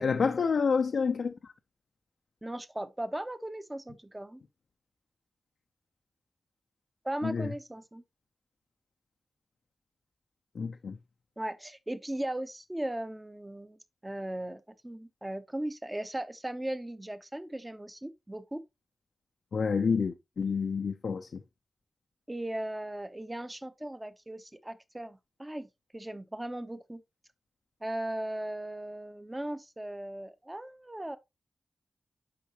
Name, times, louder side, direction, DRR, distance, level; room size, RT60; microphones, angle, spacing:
voice 1, 0.0-1.3 7.2-7.5 10.6-11.0 19.5-21.4, left 5 dB, 80° left, 0.6 m, -28 dB
voice 2, 2.4-4.4 7.0-8.0 11.4-18.6 22.3-27.0 27.8-31.2, right 1 dB, 15° right, 0.8 m, -38 dB
8.5 x 5.7 x 2.9 m
wide cardioid pair, 105°, 0 cm